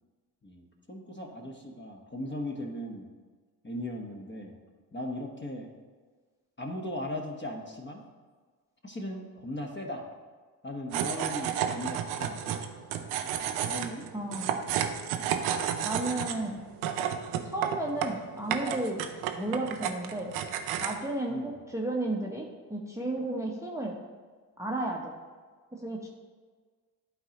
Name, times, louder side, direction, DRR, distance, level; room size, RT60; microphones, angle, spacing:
voice 1, 0.4-3.1 3.6-4.6 4.9-5.7 6.6-8.0 8.8-10.1 10.6-12.7 13.6-14.1 21.3-21.5, left 1 dB, 20° left, 1 dB, 1.2 m, -38 dB
sound 1, 10.9-21.0, right 9 dB, 70° right, 0.7 m, -32 dB
voice 2, 14.1-14.5 15.8-16.6 17.4-19.0 19.3-20.3 20.8-24.0 24.6-25.1 25.7-26.1, right 1 dB, 5° right, -1 dB, 1.0 m, -33 dB
11.5 x 4.0 x 3.0 m, 1.5 s
hypercardioid pair, 40°, 49 cm